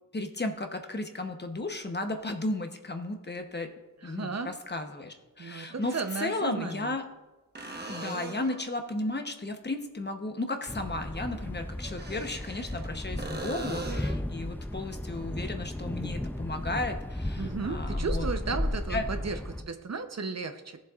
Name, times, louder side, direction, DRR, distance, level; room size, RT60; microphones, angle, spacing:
voice 1, 0.1-3.7 4.0-7.0 7.9-18.3 18.9-19.0, left 2 dB, 30° left, 5 dB, 0.9 m, -34 dB
sound 1, 2.2-2.3 4.4-4.5 5.7-6.5 7.5-8.7 11.8-12.9 13.2-14.2 17.9-18.0, right 2 dB, 30° right, 1.1 m, -40 dB
voice 2, 4.0-4.5 5.4-6.9 17.4-20.8, right 4 dB, 55° right, 7 dB, 0.8 m, -35 dB
Thunder, 10.7-19.6, left 1 dB, 5° left, 0.5 m, -34 dB
17.0 x 7.3 x 2.4 m, 1.1 s
wide cardioid pair, 100°, 32 cm